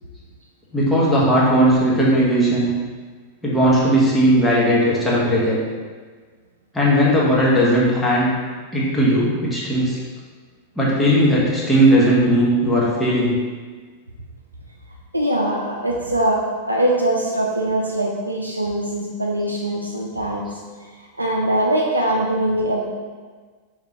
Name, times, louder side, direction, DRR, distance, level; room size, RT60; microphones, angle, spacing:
voice 1, 0.7-2.7 3.4-5.6 6.7-8.3 8.7-10.0 10.8-13.3, equal, 5° left, -7 dB, 1.3 m, -17 dB
voice 2, 15.1-20.5 21.2-22.9, right 1 dB, 85° right, -2 dB, 0.4 m, -22 dB
5.0 x 3.5 x 3.0 m, 1.5 s
figure-of-eight pair, 90°, 0 cm